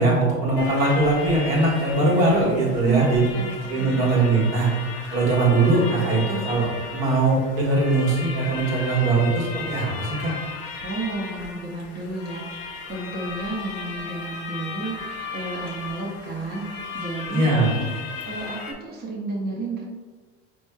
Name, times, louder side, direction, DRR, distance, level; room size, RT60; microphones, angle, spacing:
voice 1, 0.0-3.3 3.7-4.7 5.1-10.3 17.3-17.7, right 2 dB, 70° right, -5 dB, 1.5 m, -21 dB
sound 1, 0.6-18.7, left 4 dB, 80° left, 0.8 m, -36 dB
voice 2, 3.3-4.1 10.8-19.8, right 3 dB, 30° right, -3 dB, 0.8 m, -32 dB
4.4 x 3.0 x 2.2 m, 1.4 s
hypercardioid pair, 85°, 32 cm